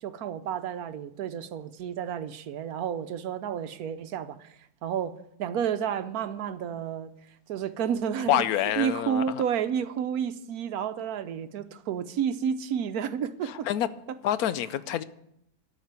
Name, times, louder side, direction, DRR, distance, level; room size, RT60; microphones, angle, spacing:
voice 1, 0.0-4.6 4.8-7.1 7.5-8.5 8.8-13.7, right 8 dB, 75° right, 1.2 m, -31 dB
voice 2, 8.3-9.2 13.5-13.9 14.2-15.0, left 11 dB, 75° left, 1.1 m, -26 dB
13.0 x 5.9 x 9.4 m
omnidirectional pair, 1.6 m